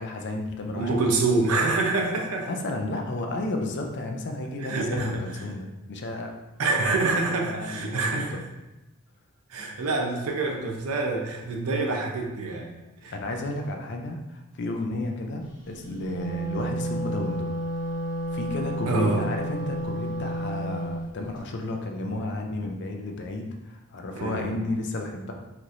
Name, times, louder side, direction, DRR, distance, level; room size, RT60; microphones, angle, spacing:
voice 1, 0.0-1.0 2.5-6.3 7.4-8.4 13.1-17.5 18.3-25.3, left 2 dB, 50° left, 3 dB, 0.5 m, -32 dB
voice 2, 0.7-2.5 4.6-5.4 6.6-8.4 9.5-12.7 13.0-13.1 18.9-19.3 24.2-24.5, right 3 dB, 75° right, 1 dB, 0.6 m, -26 dB
Wind instrument woodwind instrument, 15.9-21.0, right 1 dB, 20° left, 1.2 m, -31 dB
4.4 x 3.0 x 2.6 m, 0.99 s
head